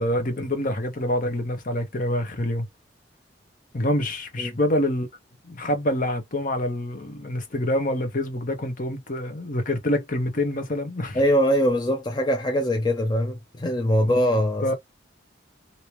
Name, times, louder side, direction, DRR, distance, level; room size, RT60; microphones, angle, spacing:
voice 1, 0.0-2.7 3.7-5.1 5.5-11.2 14.0-14.1 14.6-14.7, left 1 dB, 50° left, 1.0 m, -26 dB
voice 2, 11.1-14.7, equal, 25° left, 0.5 m, -22 dB
3.1 x 2.8 x 3.0 m
head